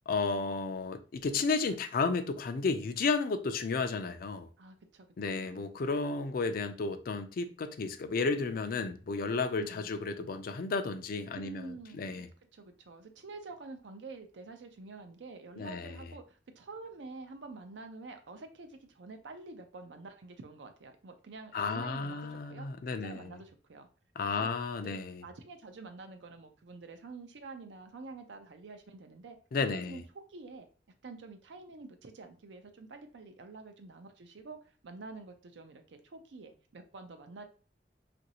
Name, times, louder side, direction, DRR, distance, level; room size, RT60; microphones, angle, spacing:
voice 1, 0.1-4.5 5.2-11.7 12.0-12.3 15.6-16.0 21.5-23.2 24.2-25.2 29.5-30.0, left 4 dB, 55° left, 0.4 m, -32 dB
voice 2, 4.6-5.7 9.6-9.9 11.3-12.3 12.5-23.9 24.2-24.5 24.8-29.4 29.7-30.7 31.0-37.4, right 3 dB, 85° right, 0.5 m, -48 dB
3.0 x 2.5 x 2.8 m
head